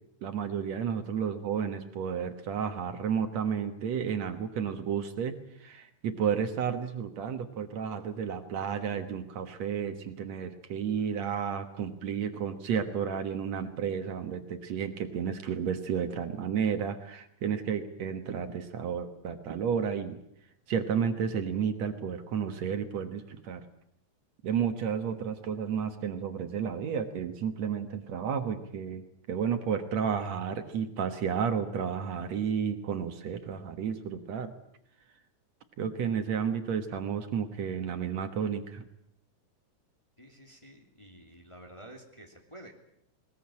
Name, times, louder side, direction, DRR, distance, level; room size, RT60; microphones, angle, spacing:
voice 1, 0.2-5.3 5.6-20.2 20.7-23.6 24.4-29.0 29.3-34.5 35.8-38.8, right 7 dB, 65° right, 8 dB, 2.5 m, -32 dB
voice 2, 40.2-42.7, right 1 dB, 10° left, 2 dB, 2.5 m, -50 dB
20.5 x 20.5 x 8.7 m, 0.76 s
omnidirectional pair, 3.4 m